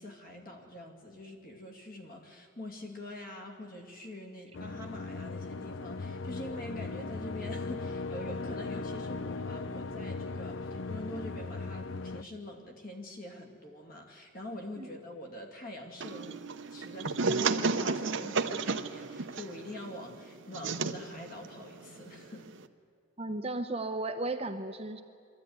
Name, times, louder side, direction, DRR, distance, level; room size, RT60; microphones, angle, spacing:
voice 1, 0.0-22.5, left 1 dB, 40° left, 2 dB, 2.6 m, -45 dB
sound 1, 4.5-12.2, left 3 dB, 60° left, 0.5 m, -38 dB
sound 2, 16.0-22.7, right 4 dB, 60° right, 0.8 m, -33 dB
voice 2, 23.2-25.0, right 2 dB, 30° right, 6 dB, 0.7 m, -35 dB
24.0 x 14.0 x 9.6 m, 2.3 s
head